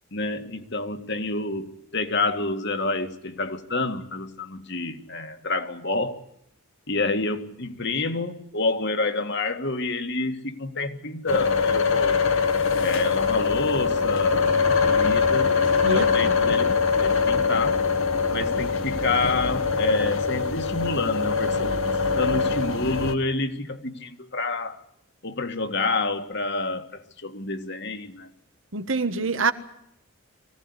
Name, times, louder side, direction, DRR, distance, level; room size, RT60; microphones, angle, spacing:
voice 1, 0.1-6.2 6.9-12.3 12.8-15.5 15.9-17.8 18.3-21.8 22.2-24.8 25.2-28.3, left 3 dB, 50° left, 2.0 m, -28 dB
sound 1, 11.3-23.1, left 5 dB, 65° left, 1.6 m, -23 dB
voice 2, 15.8-16.4 28.7-29.5, right 3 dB, 65° right, 1.4 m, -25 dB
23.5 x 16.5 x 9.8 m
head